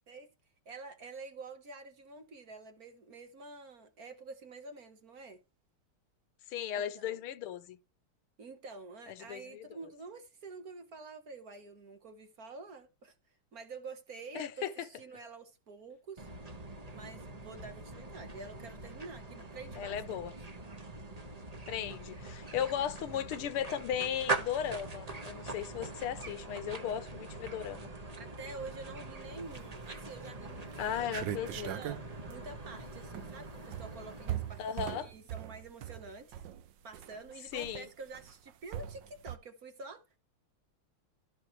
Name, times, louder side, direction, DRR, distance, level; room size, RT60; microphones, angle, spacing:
voice 1, 0.6-5.4 6.7-7.2 8.4-13.1 13.5-16.3 16.9-20.2 28.2-32.0 32.3-34.6 35.0-36.4 36.8-40.2, right 3 dB, 50° right, 1.5 m, -48 dB
voice 2, 6.5-7.8 9.1-9.8 14.4-14.9 19.8-20.3 21.7-27.9 30.8-31.7 34.6-35.1 37.5-37.9, left 9 dB, 85° left, 1.8 m, -36 dB
sound 1, 16.2-34.8, right 3 dB, 25° right, 1.0 m, -43 dB
sound 2, 29.6-30.0 30.4-30.5 30.7-39.4, right 12 dB, 70° right, 1.2 m, -41 dB
14.0 x 6.5 x 3.1 m
omnidirectional pair, 2.3 m